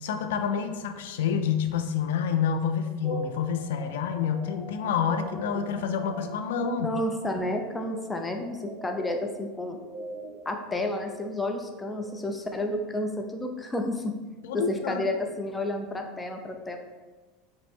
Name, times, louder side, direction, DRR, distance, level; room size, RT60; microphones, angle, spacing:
voice 1, 0.0-6.9 14.4-15.0, left 7 dB, 75° left, 7 dB, 0.3 m, -28 dB
sound 1, 3.0-12.2, equal, 25° right, 0.8 m, -43 dB
voice 2, 6.8-9.8 10.5-14.1 14.5-16.8, left 1 dB, 15° left, 4 dB, 0.5 m, -31 dB
5.1 x 2.1 x 3.4 m, 1.2 s
hypercardioid pair, 90°, 0 cm